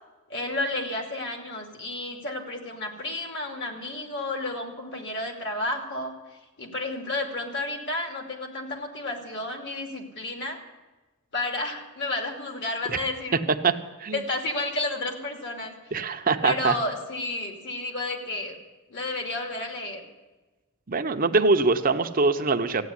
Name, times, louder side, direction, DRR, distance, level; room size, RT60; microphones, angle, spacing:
voice 1, 0.3-10.6 11.3-13.6 14.1-15.7 16.4-18.5 18.9-20.0, left 2 dB, 55° left, 3 dB, 2.7 m, -31 dB
voice 2, 15.9-16.7 20.9-22.9, right 4 dB, 40° right, 7 dB, 0.9 m, -23 dB
15.0 x 9.3 x 9.6 m, 1.2 s
head